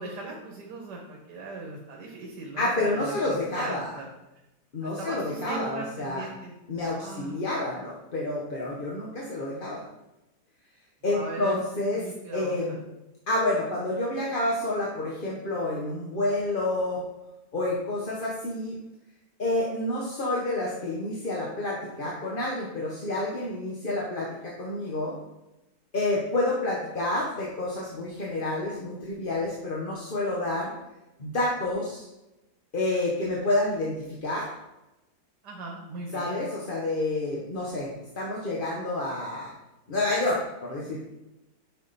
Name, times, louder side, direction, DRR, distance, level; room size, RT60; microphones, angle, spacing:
voice 1, 0.0-4.1 4.8-6.6 7.0-7.5 11.0-11.6 12.0-12.8 35.4-36.4, right 3 dB, 85° right, -1 dB, 1.8 m, -39 dB
voice 2, 2.6-3.9 4.7-6.2 6.7-9.8 11.0-12.0 12.3-12.8 13.3-17.0 17.5-18.8 19.4-25.2 25.9-30.7 31.2-32.1 32.7-34.5 36.1-37.9 38.2-39.5 39.9-41.0, left 2 dB, 35° left, -4 dB, 1.2 m, -29 dB
8.3 x 5.9 x 4.2 m, 0.96 s
omnidirectional pair, 1.8 m